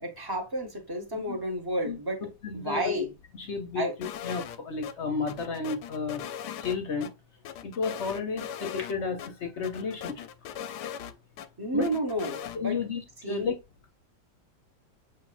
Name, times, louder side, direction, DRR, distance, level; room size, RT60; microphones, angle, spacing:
voice 1, 0.0-2.2 2.5-3.1 3.7-3.9 11.6-12.8 13.2-13.5, right 1 dB, 20° right, 0.7 m, -31 dB
voice 2, 1.9-3.0 3.3-3.8 4.2-6.2 6.6-7.1 7.6-10.3 10.8-10.9 11.7-11.9 12.5-13.5, left 5 dB, 55° left, 0.8 m, -32 dB
sound 1, 4.0-4.6 4.8-4.9 5.3-7.1 7.4-8.9 9.2-9.3 9.6-11.5 11.8-12.6, left 9 dB, 75° left, 1.1 m, -39 dB
7.5 x 2.8 x 2.4 m
omnidirectional pair, 2.0 m